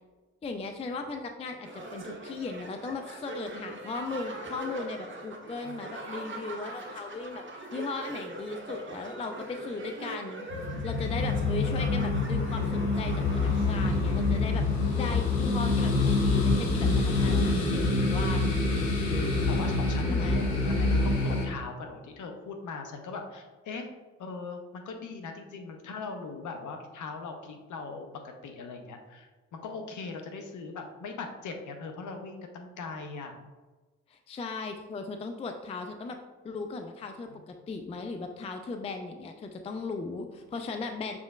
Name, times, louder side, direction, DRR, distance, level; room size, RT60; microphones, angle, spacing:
voice 1, 0.4-18.7 19.9-20.5 34.1-36.2 36.4-41.2, left 3 dB, 15° left, 5 dB, 0.4 m, -37 dB
sound 1, 1.6-14.4, right 2 dB, 30° right, 1.1 m, -42 dB
sound 2, 10.5-21.5, left 3 dB, 85° left, 0.6 m, -26 dB
voice 2, 17.1-17.7 19.0-23.9 24.2-33.4 37.3-37.4, left 4 dB, 50° left, 4 dB, 0.8 m, -40 dB
6.2 x 3.5 x 2.3 m, 1.2 s
hypercardioid pair, 40°, 38 cm